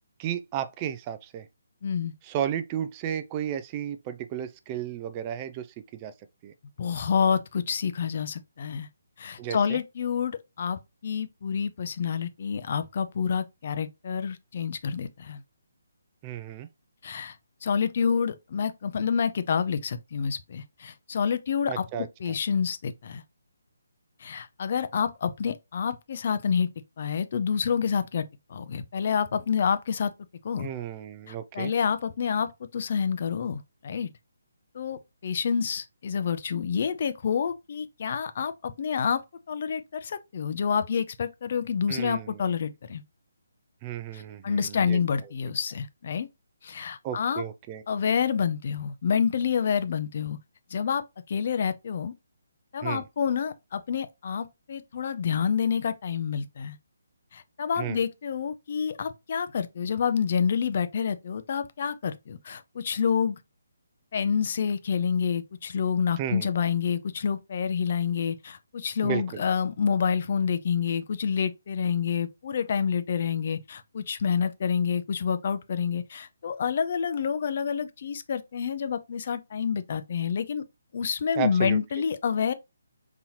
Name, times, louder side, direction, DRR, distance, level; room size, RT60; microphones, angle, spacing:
voice 1, 0.2-1.5 2.2-5.7 5.9-6.1 6.4-6.5 9.4-9.8 16.2-16.7 21.7-22.3 30.6-31.7 41.9-42.4 43.8-45.0 47.0-47.8 52.8-53.0 57.8-58.0 66.2-66.5 69.0-69.4 81.3-81.8, right 10 dB, 25° right, 0.3 m, -33 dB
voice 2, 1.8-2.1 6.8-8.9 9.2-15.4 17.0-17.4 17.6-23.2 24.2-26.7 27.0-28.2 28.5-30.1 30.4-30.7 31.3-34.1 34.7-39.2 39.5-43.0 44.1-46.3 46.6-47.4 47.9-50.4 50.7-51.0 51.3-52.1 52.7-56.8 57.3-63.4 64.1-80.6 80.9-82.5, left 6 dB, 50° left, 0.5 m, -28 dB
4.0 x 2.8 x 2.8 m
figure-of-eight pair, 150°, 0 cm